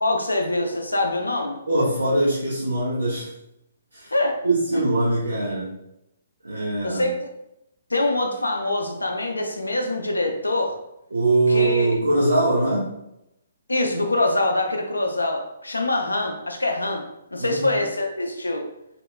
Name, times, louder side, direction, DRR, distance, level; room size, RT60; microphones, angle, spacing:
voice 1, 0.0-1.6 4.1-4.4 4.7-4.8 6.8-7.1 7.9-10.8 11.5-11.9 13.7-17.0 17.3-18.7, left 2 dB, 85° left, 3 dB, 0.4 m, -24 dB
voice 2, 1.7-3.3 3.9-4.1 4.4-5.7 6.4-7.1 11.1-12.9 17.4-17.8, right 2 dB, 80° right, -8 dB, 0.7 m, -22 dB
2.8 x 2.1 x 2.3 m, 0.83 s
figure-of-eight pair, 130°, 0 cm